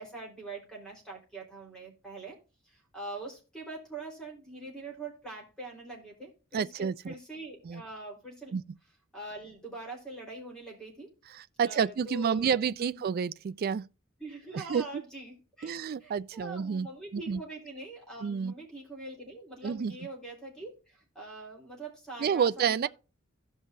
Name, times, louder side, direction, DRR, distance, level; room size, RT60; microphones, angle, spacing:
voice 1, 0.0-2.4 2.6-8.5 9.1-11.1 11.6-13.0 14.2-22.9, right 2 dB, 5° left, 3.7 m, -43 dB
voice 2, 6.5-7.1 7.6-7.8 8.5-8.6 11.3-13.9 14.5-15.0 15.6-16.9 17.1-17.4 18.2-18.5 19.6-20.0 22.2-22.9, right 7 dB, 45° right, 0.3 m, -29 dB
16.0 x 5.5 x 2.6 m
head